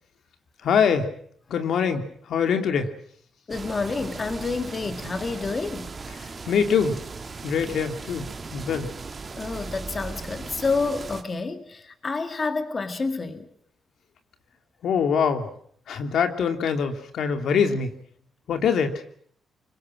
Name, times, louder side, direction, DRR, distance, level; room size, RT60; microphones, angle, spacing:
voice 1, 0.6-1.1 1.5-2.9 6.2-7.0 7.4-8.9 14.8-15.5 15.9-17.9 18.5-19.0, left 6 dB, 75° left, 7 dB, 2.9 m, -24 dB
voice 2, 3.5-5.9 9.4-13.5, left 4 dB, 35° left, 8 dB, 2.2 m, -29 dB
sound 1, 3.5-11.2, right 4 dB, 30° right, 2.4 m, -38 dB
25.0 x 22.5 x 7.6 m, 0.62 s
cardioid pair, 105°, 0 cm